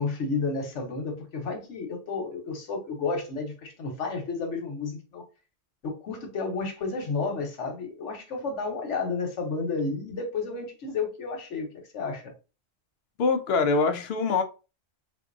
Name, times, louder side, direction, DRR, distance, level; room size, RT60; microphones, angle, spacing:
voice 1, 0.0-5.2 5.8-12.3, left 4 dB, 85° left, 1.2 m, -31 dB
voice 2, 13.2-14.4, left 4 dB, 65° left, 0.8 m, -24 dB
3.6 x 2.6 x 2.5 m
omnidirectional pair, 1.2 m